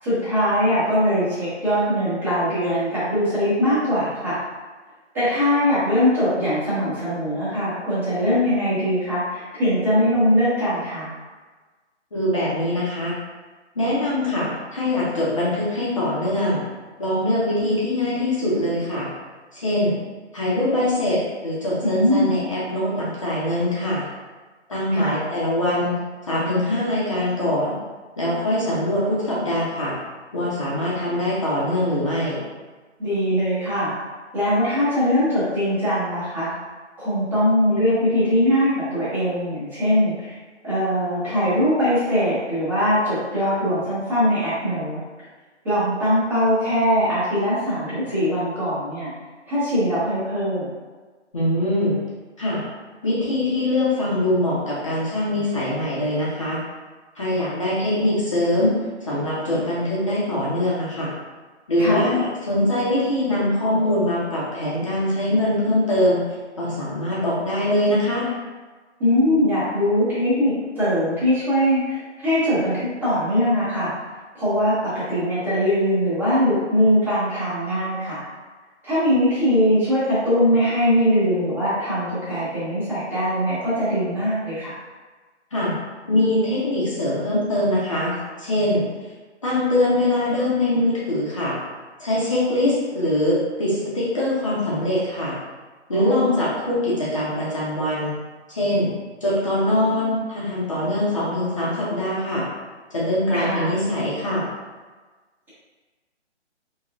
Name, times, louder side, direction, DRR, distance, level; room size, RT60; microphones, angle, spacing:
voice 1, 0.0-4.4 5.1-11.1 21.8-22.3 24.9-25.2 33.0-33.9 34.3-36.5 37.0-40.3 40.6-45.0 45.6-49.1 49.5-50.7 61.8-62.1 69.0-73.9 74.3-78.2 78.8-84.7 95.9-96.4 103.3-103.7, equal, 10° right, -18 dB, 1.0 m, -21 dB
voice 2, 12.1-13.2 13.7-16.6 17.0-19.1 19.5-19.9 20.3-24.1 24.7-26.0 26.3-27.8 28.2-30.0 30.3-32.4 51.3-52.0 52.4-52.6 53.0-56.6 57.2-61.1 61.7-66.2 66.6-68.3 85.5-85.8 86.1-88.8 89.4-91.6 92.0-95.4 95.9-98.1 98.5-98.9 99.2-102.5 102.9-104.5, left 1 dB, 25° left, -7 dB, 0.8 m, -23 dB
4.5 x 3.0 x 2.4 m, 1.3 s
hypercardioid pair, 170°, 36 cm